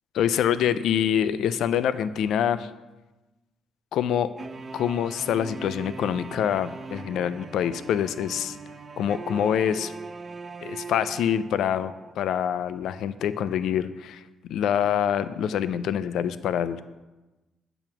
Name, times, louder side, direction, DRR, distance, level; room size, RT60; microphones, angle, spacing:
voice 1, 0.1-2.7 3.9-4.3 4.7-8.6 9.0-9.9 10.6-14.2 14.5-16.9, left 9 dB, 75° left, 13 dB, 0.3 m, -25 dB
sound 1, 4.4-12.1, right 3 dB, 35° right, 0.3 m, -40 dB
8.6 x 3.0 x 5.9 m, 1.1 s
cardioid pair, 90°, 0 cm